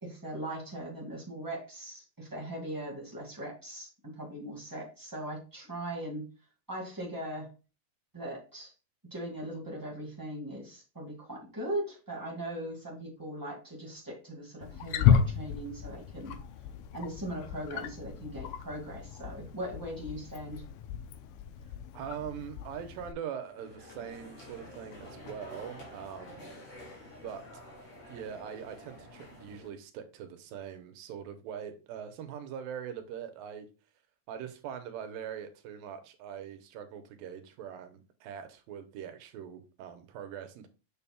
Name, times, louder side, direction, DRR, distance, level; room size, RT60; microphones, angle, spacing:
voice 1, 0.0-6.3 6.7-7.5 8.1-8.7 9.1-16.4 16.9-20.6, right 1 dB, 15° right, 0.8 m, -39 dB
Wild animals, 14.6-23.1, left 8 dB, 80° left, 1.8 m, -32 dB
voice 2, 21.9-26.6 27.2-27.5 28.1-33.7 34.3-40.7, right 8 dB, 85° right, 2.6 m, -42 dB
sound 1, 23.4-29.7, left 1 dB, 50° left, 3.4 m, -49 dB
7.0 x 6.5 x 2.3 m
omnidirectional pair, 4.0 m